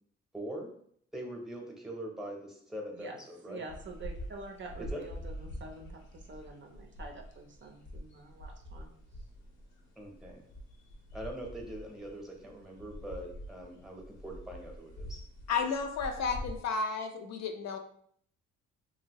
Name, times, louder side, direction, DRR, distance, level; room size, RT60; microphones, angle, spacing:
voice 1, 0.3-0.7 1.1-3.6 4.8-5.0 10.0-10.4 11.1-15.2, right 1 dB, ahead, 1 dB, 0.8 m, -42 dB
voice 2, 3.5-8.9, right 3 dB, 40° right, 2 dB, 0.5 m, -47 dB
sound 1, 3.7-16.6, equal, 80° left, 0.9 m, -46 dB
voice 3, 15.5-17.8, left 5 dB, 60° left, 5 dB, 0.5 m, -32 dB
2.8 x 2.7 x 2.9 m, 0.64 s
cardioid pair, 90°, 30 cm